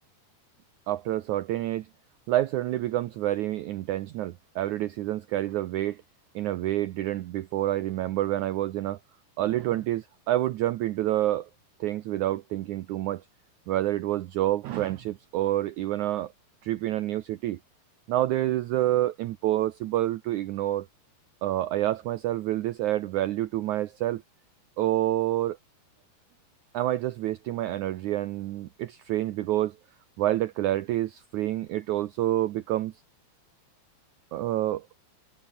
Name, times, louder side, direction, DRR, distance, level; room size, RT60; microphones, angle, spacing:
voice 1, 0.9-1.9 2.3-6.0 6.3-9.0 9.4-11.5 11.8-13.2 13.7-16.3 16.6-17.6 18.1-20.9 21.4-24.2 24.8-25.6 26.7-29.7 30.2-32.9 34.3-34.8, right 14 dB, 80° right, 1.7 m, -28 dB
omnidirectional pair, 4.6 m